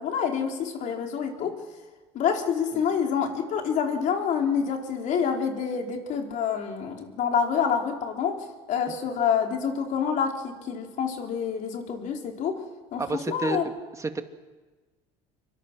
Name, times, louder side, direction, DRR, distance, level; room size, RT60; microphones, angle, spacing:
voice 1, 0.0-1.5 2.1-12.6 12.9-13.0 13.3-13.6, left 7 dB, 55° left, 2 dB, 4.2 m, -27 dB
voice 2, 13.0-14.2, right 3 dB, 20° right, 7 dB, 2.1 m, -30 dB
26.0 x 24.0 x 6.2 m, 1.3 s
supercardioid pair, 95°, 15 cm